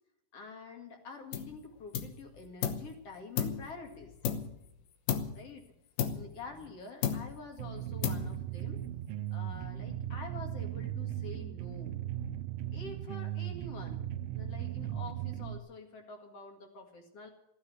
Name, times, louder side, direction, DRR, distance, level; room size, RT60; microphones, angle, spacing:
voice 1, 0.3-4.1 5.3-5.7 6.1-8.8 9.3-11.9 12.7-14.0 14.3-17.3, left 4 dB, 45° left, 3 dB, 2.8 m, -47 dB
sound 1, 1.3-1.6 1.9-2.9 3.4-4.7 5.1-5.5 6.0-6.7 7.0-7.5 8.0-8.6, left 8 dB, 90° left, 3.0 m, -34 dB
sound 2, 7.6-15.6, right 12 dB, 80° right, 2.5 m, -37 dB
15.0 x 9.8 x 9.5 m, 0.80 s
omnidirectional pair, 4.1 m